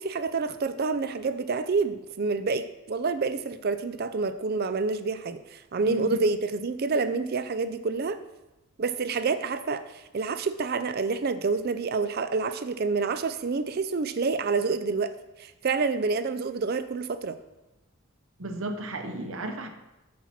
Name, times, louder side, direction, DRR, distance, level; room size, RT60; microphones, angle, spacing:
voice 1, 0.0-8.2 8.8-15.1 15.4-17.4, right 4 dB, 45° right, 12 dB, 0.4 m, -28 dB
voice 2, 5.8-6.2 18.4-19.7, right 1 dB, 60° right, 6 dB, 0.8 m, -33 dB
8.5 x 4.2 x 5.9 m, 1.0 s
head